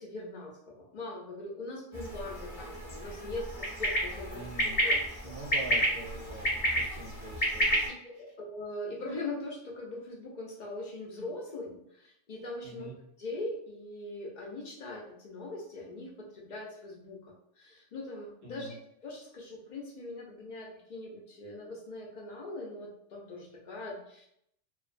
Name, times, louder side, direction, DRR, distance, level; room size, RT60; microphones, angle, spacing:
voice 1, 0.0-5.3 7.8-12.9 13.2-24.3, left 2 dB, 60° left, -2 dB, 0.4 m, -41 dB
sound 1, 1.9-7.9, equal, 20° left, 0.7 m, -31 dB
voice 2, 4.3-4.8 5.2-7.9 12.6-12.9 18.4-18.7, right 2 dB, 60° right, -2 dB, 0.6 m, -44 dB
2.5 x 2.2 x 2.4 m, 0.74 s
omnidirectional pair, 1.3 m